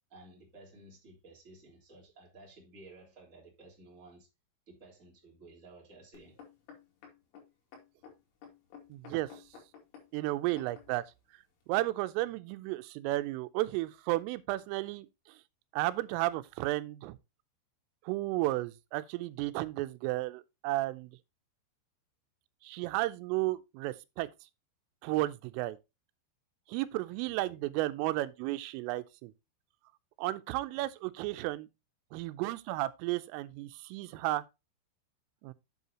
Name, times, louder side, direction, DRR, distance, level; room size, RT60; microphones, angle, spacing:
voice 1, 0.1-4.3 4.7-6.5 27.1-27.6 30.7-30.9, right 2 dB, 20° right, 2.8 m, -55 dB
sound 1, 6.1-11.0 11.7-11.8, left 6 dB, 75° left, 4.9 m, -53 dB
voice 2, 8.9-9.3 10.1-11.0 11.7-15.1 15.7-17.2 18.1-21.1 22.6-24.3 25.0-25.8 26.7-29.3 30.2-31.7 32.1-34.4 35.4-35.5, right 18 dB, 90° right, 3.2 m, -33 dB
8.2 x 8.0 x 2.9 m
omnidirectional pair, 5.7 m